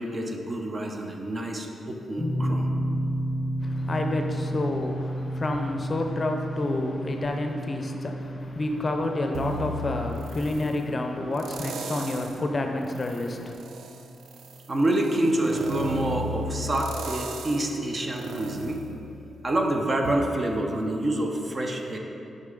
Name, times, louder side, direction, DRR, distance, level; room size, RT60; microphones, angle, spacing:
voice 1, 0.0-2.7 14.7-18.8 19.4-22.0, right 1 dB, 35° right, 2 dB, 0.7 m, -27 dB
sound 1, 2.2-15.1, right 1 dB, 15° left, 1.1 m, -33 dB
voice 2, 3.6-13.6, left 2 dB, 35° left, 4 dB, 0.6 m, -29 dB
sound 2, 9.3-10.8 11.4-12.4 12.9-19.6 20.0-20.1, right 1 dB, 85° right, 0.4 m, -35 dB
6.3 x 5.4 x 3.8 m, 2.7 s
cardioid pair, 75°, 0 cm